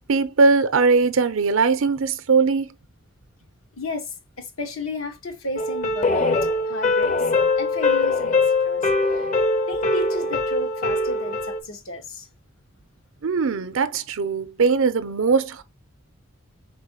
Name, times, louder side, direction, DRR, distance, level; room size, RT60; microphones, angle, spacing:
voice 1, 0.1-2.7 13.2-15.6, right 4 dB, 75° right, 0.6 m, -20 dB
voice 2, 3.8-7.2 7.6-9.3 9.7-12.3, left 2 dB, 85° left, 1.2 m, -33 dB
sound 1, 5.6-11.6, left 3 dB, 35° left, 0.6 m, -22 dB
4.4 x 3.7 x 2.8 m
head